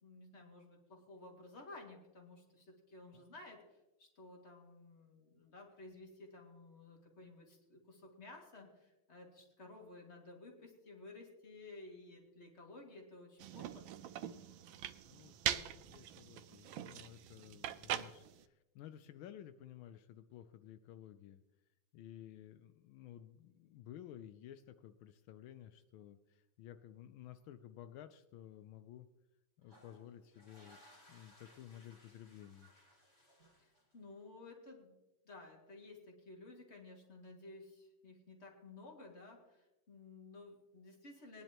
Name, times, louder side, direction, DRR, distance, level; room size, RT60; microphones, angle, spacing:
voice 1, 0.0-3.6 4.0-13.9 33.6-34.9 35.2-41.4, left 2 dB, 35° left, 1 dB, 2.3 m, -55 dB
sound 1, 13.4-18.4, right 11 dB, 80° right, 1.4 m, -42 dB
voice 2, 15.0-21.4 21.9-29.1 29.6-32.7, left 11 dB, 85° left, 10 dB, 1.4 m, -54 dB
sound 2, 29.6-34.2, equal, 50° left, 5.6 m, -64 dB
20.5 x 10.5 x 3.0 m, 0.97 s
omnidirectional pair, 2.2 m